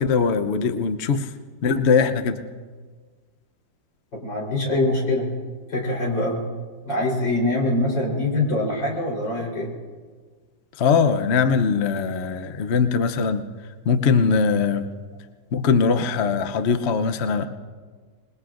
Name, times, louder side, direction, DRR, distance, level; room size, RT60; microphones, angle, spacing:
voice 1, 0.0-1.3 1.6-2.4 10.8-13.5 13.8-14.9 15.5-17.5, left 5 dB, 55° left, 8 dB, 0.8 m, -21 dB
voice 2, 4.1-5.3 5.7-6.4 6.8-9.7, left 2 dB, 85° left, -2 dB, 4.6 m, -24 dB
26.5 x 20.5 x 2.5 m, 1.5 s
omnidirectional pair, 1.9 m